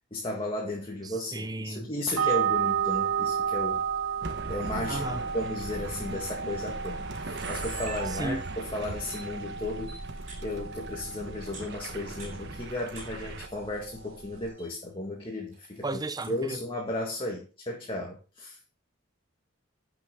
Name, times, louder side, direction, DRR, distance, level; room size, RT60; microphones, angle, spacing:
voice 1, 0.1-3.8 4.5-10.0 10.4-15.9 16.3-18.6, left 1 dB, 25° left, 1.9 m, -34 dB
voice 2, 1.3-1.9 4.9-5.2 8.1-8.4 15.8-16.6, right 2 dB, 20° right, 0.6 m, -34 dB
sound 1, 2.2-14.5, right 7 dB, 80° right, 1.1 m, -33 dB
sound 2, 4.2-13.5, right 2 dB, 60° right, 1.2 m, -39 dB
Camera, 6.2-6.3 6.8-6.9 7.1-8.7 9.1-9.2 9.9-10.4 11.3-13.1 13.4-14.1 14.4-14.7 15.5-16.4, right 4 dB, 45° right, 5.8 m, -45 dB
11.5 x 6.0 x 3.8 m
head